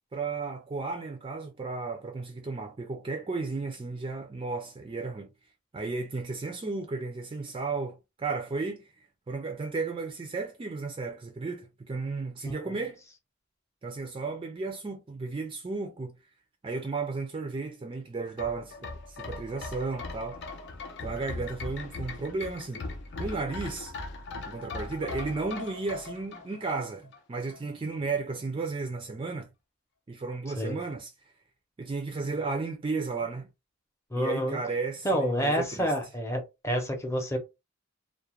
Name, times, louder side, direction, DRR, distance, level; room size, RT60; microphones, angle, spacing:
voice 1, 0.1-5.3 5.7-8.9 9.3-13.0 13.8-16.1 16.6-20.4 21.0-22.8 23.2-23.9 24.5-29.5 30.1-31.1 31.8-33.5 34.2-35.9, right 3 dB, 25° right, 0.3 m, -34 dB
sound 1, 18.3-27.2 27.5-27.6, left 3 dB, 55° left, 0.5 m, -39 dB
voice 2, 34.1-34.6 35.0-37.4, equal, 15° left, 0.6 m, -29 dB
2.4 x 2.0 x 2.9 m
head